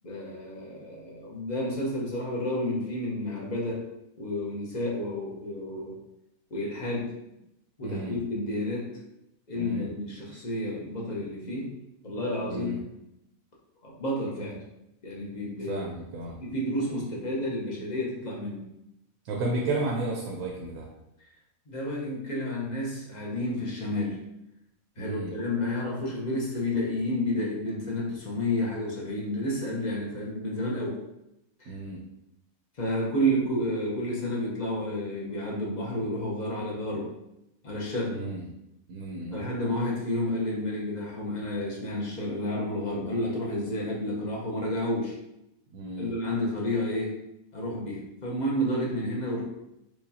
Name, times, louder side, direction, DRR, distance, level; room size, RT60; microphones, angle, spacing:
voice 1, 0.0-3.9 4.2-6.0 6.5-7.1 7.8-9.0 9.5-11.8 12.0-12.8 13.8-14.6 15.0-15.8 16.4-18.7 21.7-24.2 25.0-31.0 31.6-31.7 32.8-37.1 37.6-38.2 39.3-45.1 46.0-47.1 47.5-49.4, left 1 dB, 40° left, -4 dB, 0.7 m, -30 dB
voice 2, 7.8-8.2 9.5-9.9 12.5-12.8 15.7-16.4 19.2-20.9 25.0-25.3 31.7-32.0 38.1-38.5 38.9-39.4 45.7-46.1, right 2 dB, 80° right, -1 dB, 1.0 m, -33 dB
4.6 x 2.3 x 2.7 m, 0.85 s
omnidirectional pair, 1.5 m